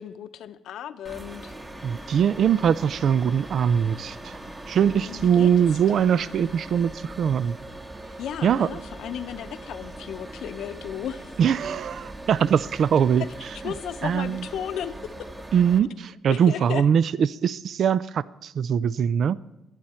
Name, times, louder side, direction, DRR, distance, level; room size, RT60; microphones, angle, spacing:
voice 1, 0.0-1.5 4.9-6.4 8.2-11.4 13.2-13.3 13.6-15.0 16.3-16.9, left 10 dB, 80° left, 11 dB, 0.7 m, -35 dB
sound 1, 1.1-15.8, right 1 dB, 20° right, 1.4 m, -40 dB
voice 2, 1.8-4.4 4.7-7.6 8.4-8.7 11.4-13.2 14.0-14.5 15.5-19.4, right 8 dB, 60° right, 19 dB, 0.4 m, -22 dB
23.5 x 9.1 x 4.3 m, 0.94 s
cardioid pair, 90°, 0 cm